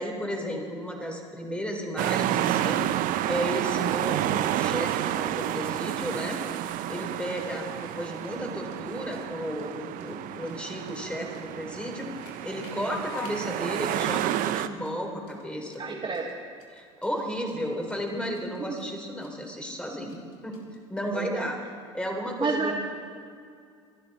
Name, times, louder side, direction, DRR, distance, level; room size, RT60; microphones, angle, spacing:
voice 1, 0.0-2.9 3.2-6.4 6.9-12.1 12.4-16.0 16.7-20.6 20.9-21.6 21.9-22.7, equal, 5° left, 1 dB, 3.9 m, -33 dB
sound 1, 2.0-14.7, right 12 dB, 60° right, 0.7 m, -30 dB
sound 2, 6.1-21.0, left 6 dB, 70° left, 2.3 m, -49 dB
voice 2, 15.8-16.3 18.6-18.8 21.1-21.5 22.4-22.7, right 4 dB, 30° right, 0 dB, 1.6 m, -30 dB
25.5 x 12.0 x 4.4 m, 2.2 s
hypercardioid pair, 70°, 16 cm